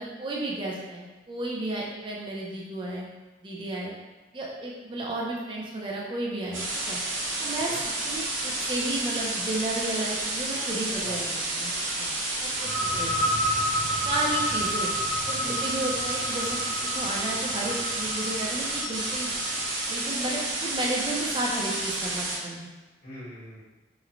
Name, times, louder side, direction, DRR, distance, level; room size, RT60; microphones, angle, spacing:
voice 1, 0.0-3.1 3.4-3.9 4.3-7.0 7.4-7.8 8.0-12.1 12.4-12.7 13.0-13.2 14.1-14.9 15.3-19.3 19.9-22.7, right 1 dB, 25° right, -3 dB, 0.4 m, -33 dB
sound 1, 6.5-22.4, right 2 dB, 90° right, 0.6 m, -30 dB
sound 2, 12.5-20.0, equal, 15° left, 1.0 m, -31 dB
voice 2, 12.8-13.6 15.3-15.6 23.0-23.6, equal, 50° left, -10 dB, 1.2 m, -43 dB
3.0 x 2.1 x 2.4 m, 1.2 s
head